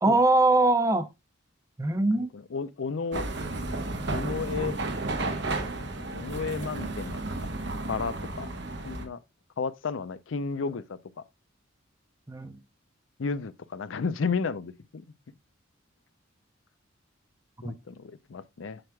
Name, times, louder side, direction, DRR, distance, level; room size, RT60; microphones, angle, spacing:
voice 1, 0.0-1.1 1.8-2.3 12.3-12.6 17.6-17.8, right 2 dB, 15° right, 0.6 m, -22 dB
voice 2, 2.5-3.3 4.1-4.8 5.7-7.2 7.9-8.5 8.8-9.2 9.6-11.0 13.2-15.0 17.6-18.8, left 5 dB, 75° left, 0.5 m, -32 dB
sound 1, 3.1-9.0, right 2 dB, 60° right, 1.2 m, -32 dB
7.8 x 6.0 x 2.2 m
head